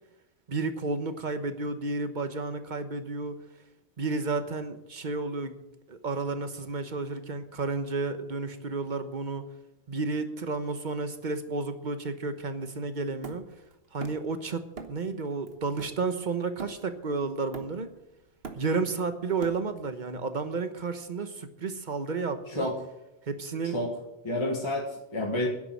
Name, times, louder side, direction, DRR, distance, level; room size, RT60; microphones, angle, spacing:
voice 1, 0.5-3.4 4.0-5.6 5.9-9.5 9.9-13.4 13.9-17.9 18.6-22.7 23.3-23.8, right 3 dB, 45° right, 9 dB, 1.3 m, -32 dB
Hammer, 13.2-14.4 14.8-15.1 15.5-17.1 17.5-18.0 18.3-19.9, right 4 dB, 60° right, 1.5 m, -43 dB
voice 2, 22.5-22.8 23.6-24.0 24.2-25.5, left 1 dB, 25° left, -1 dB, 1.7 m, -30 dB
10.5 x 8.5 x 9.2 m, 0.92 s
omnidirectional pair, 1.2 m